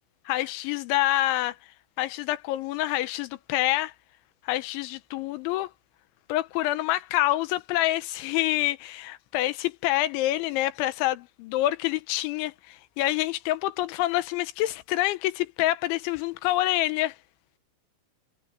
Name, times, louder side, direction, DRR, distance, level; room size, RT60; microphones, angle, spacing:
voice 1, 0.3-1.6 2.0-3.9 4.5-5.7 6.3-17.2, left 16 dB, 90° left, 3.4 m, -27 dB
omnidirectional pair, 5.2 m